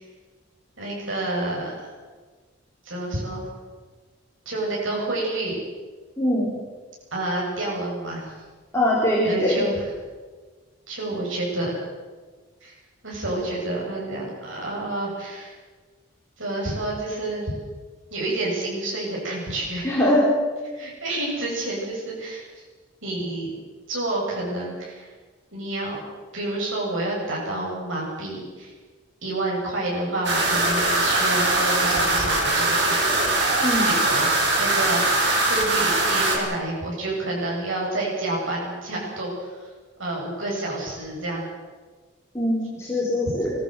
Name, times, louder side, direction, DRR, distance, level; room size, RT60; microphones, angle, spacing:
voice 1, 0.8-1.9 2.8-3.4 4.5-5.6 7.1-8.3 9.2-9.9 10.9-11.8 12.6-12.7 13.0-15.5 16.4-17.5 18.1-19.9 20.7-22.6 23.0-23.5 23.9-25.1 25.5-26.0 26.3-28.7 29.2-33.5 33.8-34.3 34.6-35.1 35.5-39.6 40.0-41.4, right 2 dB, 75° right, -3 dB, 7.9 m, -29 dB
voice 2, 6.2-6.5 8.7-9.6 19.8-20.2 33.6-33.9 42.3-43.5, left 1 dB, 15° left, -6 dB, 4.6 m, -22 dB
sound 1, 30.2-36.4, right 2 dB, 60° right, 5.3 m, -21 dB
25.0 x 17.0 x 7.9 m, 1.4 s
head